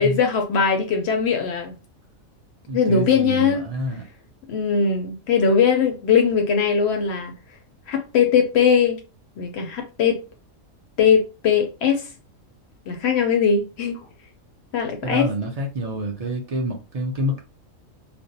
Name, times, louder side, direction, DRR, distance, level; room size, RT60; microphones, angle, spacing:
voice 1, 0.0-1.8 2.7-3.6 4.5-7.3 7.9-9.0 9.4-10.2 11.0-12.1 12.9-14.0 14.7-15.3, left 6 dB, 65° left, 0.7 m, -20 dB
voice 2, 2.7-4.0 15.0-17.4, equal, 70° right, 0.3 m, -27 dB
2.4 x 2.0 x 2.6 m
omnidirectional pair, 1.4 m